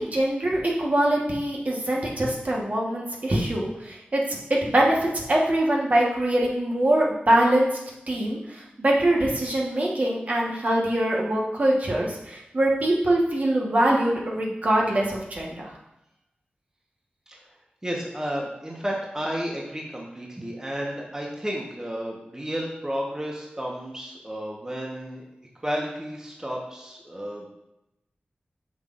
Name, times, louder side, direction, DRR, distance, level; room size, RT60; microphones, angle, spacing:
voice 1, 0.0-7.7 8.1-15.7, right 1 dB, 45° right, -3 dB, 1.3 m, -23 dB
voice 2, 17.8-25.2 25.6-27.5, equal, 20° right, -2 dB, 1.2 m, -32 dB
7.4 x 5.9 x 2.6 m, 0.87 s
wide cardioid pair, 75°, 3 cm